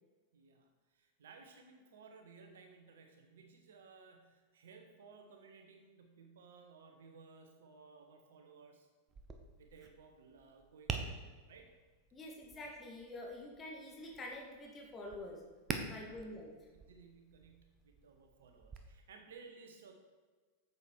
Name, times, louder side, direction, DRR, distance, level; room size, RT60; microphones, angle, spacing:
voice 1, 0.3-8.9 9.6-11.8 15.9-16.2 16.7-19.9, right 5 dB, 60° right, 4 dB, 1.5 m, -58 dB
Tap, 9.1-18.8, right 5 dB, 25° right, 1.0 m, -47 dB
voice 2, 12.1-15.4 15.9-16.6, left 1 dB, 20° left, -1 dB, 1.8 m, -47 dB
8.8 x 7.4 x 4.6 m, 1.4 s
figure-of-eight pair, 90°, 0 cm